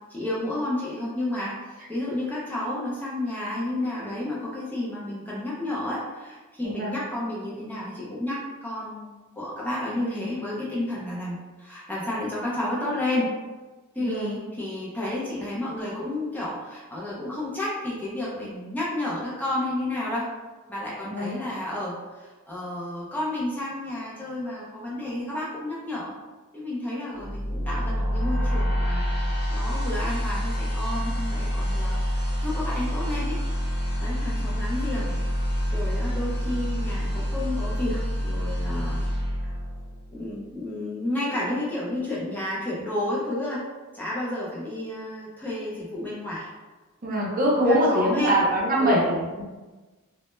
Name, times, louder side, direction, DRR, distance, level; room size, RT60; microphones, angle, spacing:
voice 1, 0.1-13.3 13.9-20.3 20.7-26.1 26.5-29.0 29.5-33.4 34.0-35.1 35.7-39.0 39.4-39.5 40.1-43.6 43.9-46.5 47.7-48.4 48.8-49.0, left 1 dB, 10° left, -6 dB, 0.3 m, -31 dB
voice 2, 6.6-7.0 14.0-14.4 21.0-21.4 47.0-49.4, equal, 40° right, -3 dB, 0.5 m, -23 dB
sound 1, 27.2-40.3, equal, 80° left, 0.9 m, -27 dB
2.1 x 2.0 x 3.0 m, 1.2 s
head